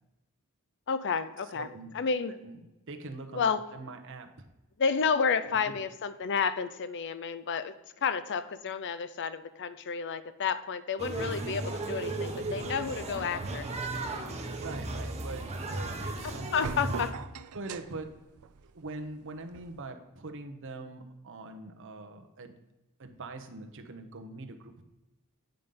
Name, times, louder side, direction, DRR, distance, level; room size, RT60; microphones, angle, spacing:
voice 1, 0.9-1.7 1.9-2.3 3.3-3.6 4.8-7.7 8.0-13.7 16.2-17.1, left 6 dB, 55° left, 13 dB, 0.5 m, -31 dB
voice 2, 1.5-2.0 2.3-2.6 2.9-4.5 5.4-5.8 14.5-16.7 17.5-18.1 18.6-22.6 23.0-24.8, right 3 dB, 60° right, 6 dB, 1.0 m, -43 dB
sound 1, 11.0-17.1, right 2 dB, 30° right, 1.0 m, -35 dB
sound 2, 13.4-19.8, right 5 dB, 75° right, 0.5 m, -45 dB
9.0 x 5.2 x 5.4 m, 1.0 s
head